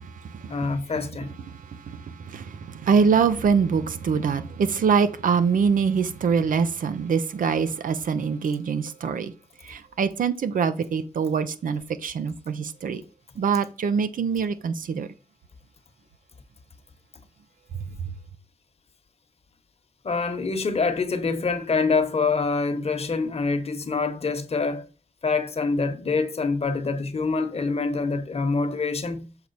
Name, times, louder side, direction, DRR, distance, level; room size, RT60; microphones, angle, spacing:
voice 1, 0.5-1.4 20.0-24.9 25.2-29.2, left 4 dB, 50° left, 1.1 m, -25 dB
voice 2, 2.3-9.3 9.7-13.0 13.4-15.1, right 6 dB, 85° right, 0.7 m, -24 dB
6.9 x 4.6 x 4.1 m
cardioid pair, 85°, 14 cm